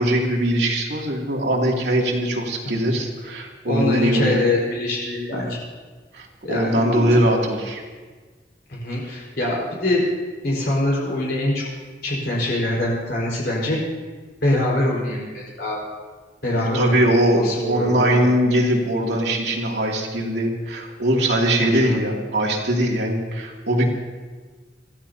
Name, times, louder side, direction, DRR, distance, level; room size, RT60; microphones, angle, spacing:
voice 1, 0.0-4.3 5.3-5.4 6.1-7.8 16.6-23.9, right 1 dB, 75° right, -1 dB, 2.7 m, -21 dB
voice 2, 3.6-5.6 6.4-7.2 8.7-10.0 10.4-11.7 12.0-13.8 14.4-15.8 16.4-17.0 17.4-18.2 21.6-22.0, left 1 dB, 65° left, -5 dB, 4.7 m, -24 dB
26.0 x 15.0 x 2.8 m, 1.4 s
head